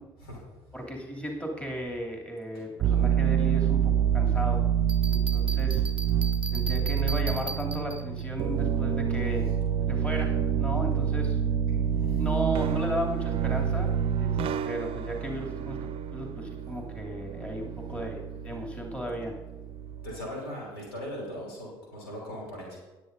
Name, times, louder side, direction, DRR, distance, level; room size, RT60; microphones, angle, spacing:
voice 1, 0.2-0.7 2.5-2.9 9.9-10.0 11.7-12.3 20.0-22.8, equal, 80° left, -2 dB, 3.1 m, -40 dB
voice 2, 0.7-4.6 5.1-5.9 6.5-9.5 9.9-11.4 12.2-13.9 14.2-14.4 14.6-19.4, equal, 10° left, -1 dB, 2.6 m, -35 dB
sound 1, 2.8-20.2, right 8 dB, 50° right, 0.6 m, -27 dB
Bell, 4.9-8.2, right 1 dB, 10° right, 0.6 m, -38 dB
19.5 x 8.4 x 2.6 m, 1.1 s
figure-of-eight pair, 50°, 12 cm